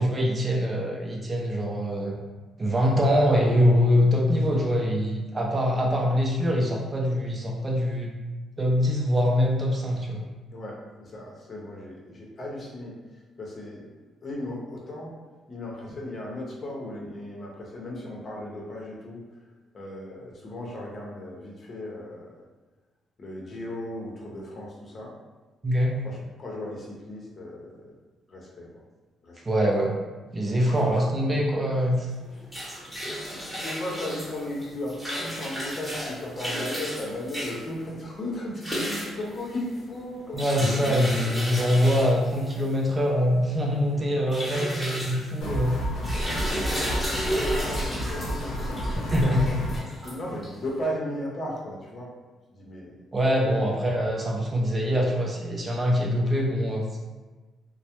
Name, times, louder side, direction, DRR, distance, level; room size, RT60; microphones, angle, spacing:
voice 1, 0.0-2.2 2.6-8.1 8.6-10.3 25.6-26.0 29.4-30.0 30.3-32.1 40.3-45.8 49.0-49.4 53.1-57.0, equal, 30° right, -2 dB, 0.4 m, -24 dB
voice 2, 10.5-13.0 13.4-13.9 14.2-15.2 15.5-19.2 19.7-22.4 23.2-25.1 26.0-27.9 28.3-28.8 29.2-29.4 30.6-31.0 32.0-32.4 32.7-40.8 44.5-44.8 45.2-45.6 46.3-48.8 49.1-49.5 50.0-52.1 52.5-53.0 53.5-53.6, left 1 dB, 45° left, -3 dB, 0.6 m, -36 dB
sound 1, 32.2-50.7, equal, 5° left, 0.9 m, -34 dB
sound 2, 45.4-49.8, equal, 85° left, 0.6 m, -30 dB
2.1 x 2.0 x 2.8 m, 1.3 s
cardioid pair, 90°, 0 cm